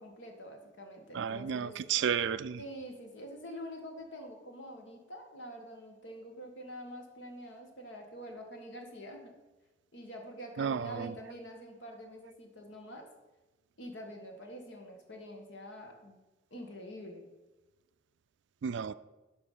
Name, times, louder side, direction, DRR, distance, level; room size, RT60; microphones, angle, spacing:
voice 1, 0.0-1.7 2.6-9.3 9.9-13.1 13.8-16.2 16.5-17.3, equal, 65° left, 3 dB, 1.5 m, -46 dB
voice 2, 1.1-2.6 10.6-11.1 18.6-18.9, right 7 dB, 65° right, 15 dB, 0.4 m, -32 dB
11.5 x 5.0 x 5.5 m, 1.1 s
head